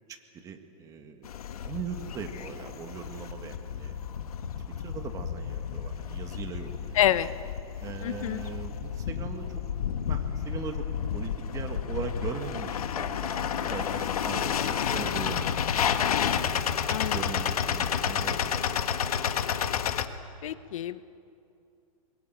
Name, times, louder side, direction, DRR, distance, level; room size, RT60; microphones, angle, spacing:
voice 1, 0.1-1.3 1.6-4.3 4.7-7.0 7.8-9.6 10.1-10.9 11.1-16.0 16.5-16.6 16.9-18.8, right 6 dB, 20° right, 5 dB, 1.9 m, -40 dB
sound 1, 1.2-20.1, left 8 dB, 80° left, 1.6 m, -31 dB
voice 2, 6.9-7.3 8.0-8.4 16.9-17.2 20.4-21.0, left 12 dB, 65° left, 14 dB, 0.9 m, -27 dB
24.5 x 22.5 x 9.3 m, 2.6 s
hypercardioid pair, 155°, 19 cm